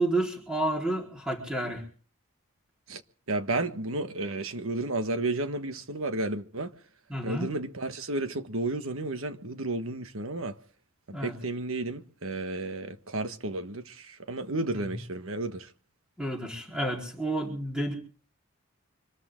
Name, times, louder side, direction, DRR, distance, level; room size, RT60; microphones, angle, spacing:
voice 1, 0.0-1.8 7.1-7.5 11.1-11.4 14.7-15.0 16.2-17.9, right 1 dB, 5° right, 4.4 m, -30 dB
voice 2, 3.3-6.7 7.2-10.5 11.2-15.7, right 2 dB, 70° right, 1.4 m, -32 dB
26.0 x 13.5 x 3.8 m
head